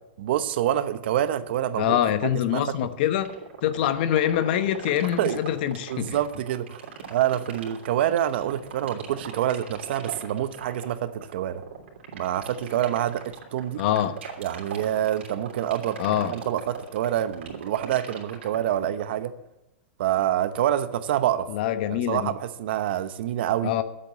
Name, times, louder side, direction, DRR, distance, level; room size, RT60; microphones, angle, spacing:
voice 1, 0.2-2.8 5.2-5.4 5.9-6.8 7.1-11.6 12.1-13.8 14.4-19.3 20.0-21.5 21.9-23.7, right 11 dB, 65° right, 1.0 m, -27 dB
voice 2, 1.8-3.3 3.6-6.2 13.8-14.2 16.0-16.3 21.5-22.3 23.6-23.8, left 11 dB, 55° left, 1.0 m, -24 dB
sound 1, 3.2-19.2, right 8 dB, 90° right, 3.2 m, -39 dB
10.5 x 8.2 x 8.3 m
supercardioid pair, 150°, 6 cm